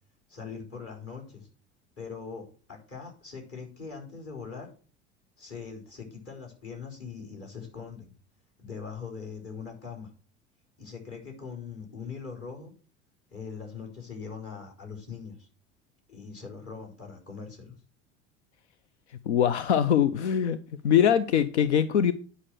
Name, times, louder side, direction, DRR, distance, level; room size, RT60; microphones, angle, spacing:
voice 1, 0.3-1.5 2.0-4.7 5.4-8.1 8.6-10.1 10.8-12.7 13.3-15.5 16.1-17.7, left 5 dB, 45° left, 1 dB, 4.9 m, -41 dB
voice 2, 19.3-20.6 20.8-22.1, left 9 dB, 85° left, 14 dB, 0.6 m, -22 dB
9.8 x 5.5 x 6.2 m, 0.40 s
hypercardioid pair, 80°, 33 cm